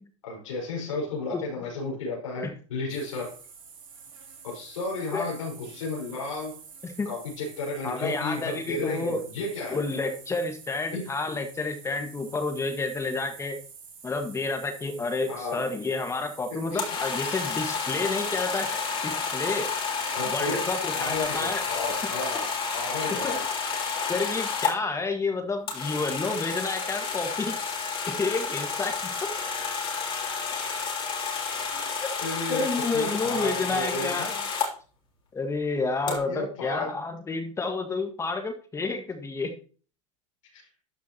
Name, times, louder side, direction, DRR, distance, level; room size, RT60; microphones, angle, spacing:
voice 1, 0.2-3.4 4.4-6.6 7.0-9.8 10.9-11.1 15.2-15.7 16.7-17.0 20.1-23.4 31.7-31.8 32.2-32.7 32.9-34.1 36.1-37.0 40.5-40.6, left 2 dB, 85° left, -3 dB, 5.0 m, -33 dB
sound 1, 2.9-22.0, right 6 dB, 90° right, 2.8 m, -48 dB
voice 2, 7.8-9.2 9.7-13.6 14.0-19.7 20.3-21.6 23.2-23.4 24.1-27.6 28.1-29.3 32.0-32.1 32.5-34.3 35.3-39.6, left 3 dB, 15° left, 6 dB, 1.6 m, -30 dB
sound 2, 16.7-24.7 25.7-34.7 36.1-36.2, left 5 dB, 35° left, 3.0 m, -30 dB
12.5 x 5.8 x 2.9 m, 0.37 s
hypercardioid pair, 110°, 17 cm